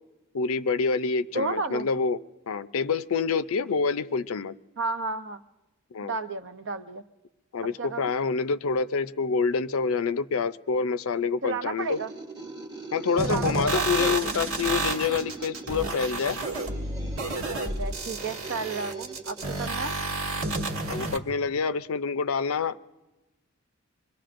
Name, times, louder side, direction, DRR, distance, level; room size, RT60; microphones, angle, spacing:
voice 1, 0.3-2.2 2.5-4.5 5.9-6.2 7.5-12.0 12.9-16.4 20.9-22.8, left 5 dB, 80° left, 13 dB, 0.5 m, -27 dB
voice 2, 1.3-1.9 4.8-5.4 6.0-7.0 7.8-8.1 11.4-12.1 13.2-14.3 17.5-20.0, right 3 dB, 60° right, 9 dB, 0.7 m, -32 dB
sound 1, 11.8-20.0, right 3 dB, 20° right, 1.1 m, -42 dB
sound 2, 13.2-21.2, right 2 dB, 80° right, 1.4 m, -31 dB
26.0 x 21.5 x 2.6 m, 1.1 s
head